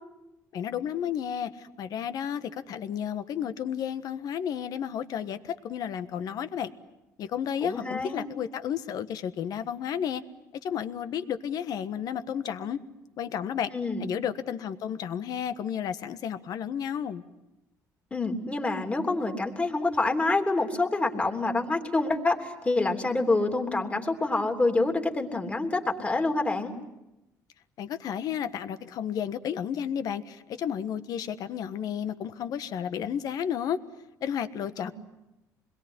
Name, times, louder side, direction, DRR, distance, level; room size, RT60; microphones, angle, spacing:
voice 1, 0.5-6.7 7.2-10.2 10.6-12.8 13.2-13.7 14.0-17.2 27.8-33.8 34.2-34.9, left 8 dB, 65° left, 11 dB, 1.4 m, -32 dB
voice 2, 7.6-8.3 13.7-14.0 18.1-26.7 34.8-34.9, left 2 dB, 20° left, 4 dB, 3.3 m, -27 dB
27.0 x 22.0 x 9.8 m, 0.95 s
cardioid pair, 110°, 7 cm